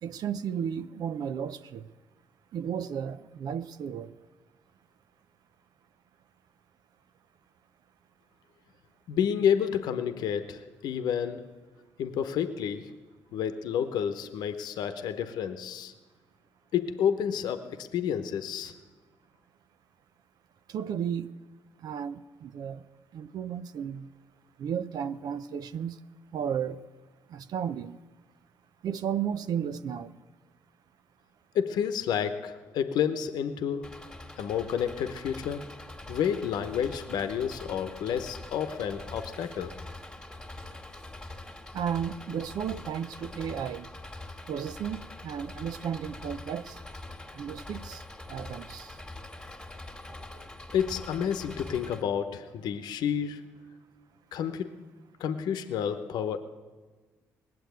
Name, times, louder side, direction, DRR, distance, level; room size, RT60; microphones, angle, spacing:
voice 1, 0.0-1.8 2.5-4.1 20.7-21.3 21.8-22.8 23.1-24.1 24.6-26.0 26.3-26.8 27.3-28.0 28.8-30.1 41.7-43.9 44.5-46.8 47.3-48.0 48.3-49.0, right 8 dB, 65° right, 0.6 m, -33 dB
voice 2, 9.1-11.5 12.0-12.9 13.3-15.9 16.7-18.7 31.5-33.9 34.4-35.7 36.1-39.7 50.3-50.5 50.7-53.5 54.3-54.7 55.2-56.4, left 8 dB, 75° left, 0.9 m, -30 dB
Engine, 33.8-52.0, left 2 dB, 10° left, 1.9 m, -44 dB
19.0 x 7.7 x 9.2 m
supercardioid pair, 60°, 7 cm